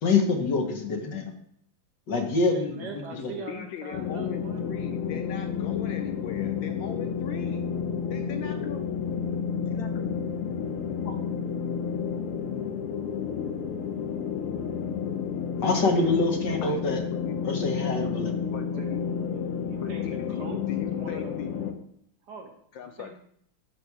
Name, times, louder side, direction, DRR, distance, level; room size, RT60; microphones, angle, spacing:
voice 1, 0.0-1.3 2.1-2.9 3.2-3.3 15.6-17.0 17.4-18.3, left 3 dB, 55° left, 3 dB, 1.7 m, -25 dB
voice 2, 2.5-4.7 18.6-19.0 19.3-21.4 22.3-23.2, right 4 dB, 55° right, 2 dB, 1.5 m, -42 dB
voice 3, 3.5-7.7 8.1-8.8 9.7-10.1 11.0-11.3 16.6-16.8 17.1-17.4 18.5-19.1 19.8-21.5 22.7-23.2, left 9 dB, 75° left, 7 dB, 1.2 m, -39 dB
sound 1, 3.9-21.7, left 7 dB, 90° left, 1.8 m, -31 dB
12.0 x 4.2 x 4.8 m, 0.68 s
omnidirectional pair, 2.4 m